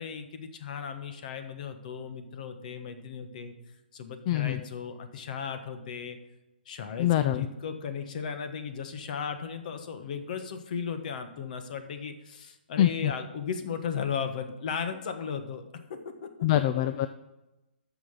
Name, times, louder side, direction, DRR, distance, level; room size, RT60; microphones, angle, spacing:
voice 1, 0.0-3.5 3.9-6.2 6.7-15.6 16.2-16.3 16.9-17.1, left 6 dB, 50° left, 8 dB, 1.3 m, -36 dB
voice 2, 4.3-4.6 7.0-7.5 12.8-13.1 16.4-17.1, left 12 dB, 35° left, 11 dB, 0.4 m, -24 dB
9.1 x 6.2 x 6.7 m, 0.97 s
hypercardioid pair, 150°, 6 cm